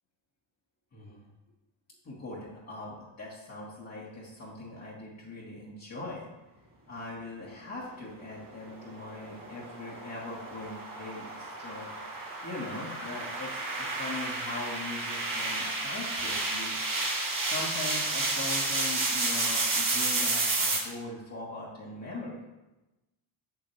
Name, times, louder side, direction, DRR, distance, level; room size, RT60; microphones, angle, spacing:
voice 1, 0.9-1.3 2.0-6.3 6.9-11.9 12.4-16.8 17.4-22.4, left 2 dB, 30° left, -7 dB, 1.6 m, -41 dB
sound 1, 8.7-20.8, right 2 dB, 40° right, 2.0 m, -31 dB
7.5 x 7.4 x 3.3 m, 1.0 s
cardioid pair, 120°, 49 cm